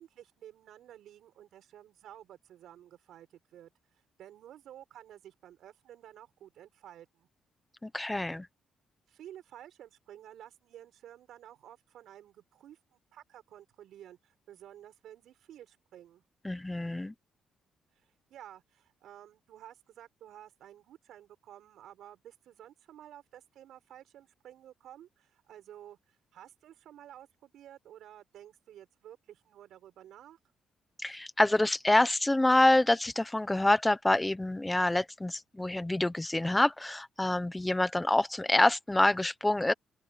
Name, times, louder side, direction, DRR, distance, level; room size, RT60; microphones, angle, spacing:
voice 1, 0.0-3.7 4.2-7.3 9.1-16.2 18.3-30.4, right 11 dB, 75° right, 5.9 m, -52 dB
voice 2, 7.8-8.5 16.4-17.1 31.0-39.7, left 1 dB, 10° left, 1.0 m, -26 dB
open air
cardioid pair, 90°, 0 cm